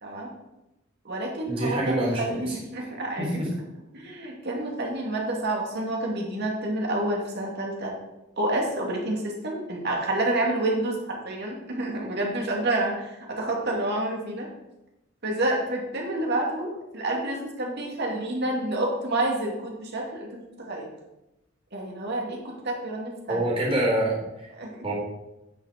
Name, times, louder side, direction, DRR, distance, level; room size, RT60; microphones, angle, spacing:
voice 1, 0.0-0.3 1.0-3.4 3.9-7.9 8.4-14.5 15.2-20.9 21.7-23.5 24.5-24.8, right 1 dB, 55° right, -1 dB, 2.5 m, -29 dB
voice 2, 1.5-2.6 3.2-3.5 23.3-24.5 24.8-24.9, right 1 dB, 30° right, -4 dB, 4.0 m, -26 dB
10.0 x 6.5 x 5.0 m, 0.93 s
head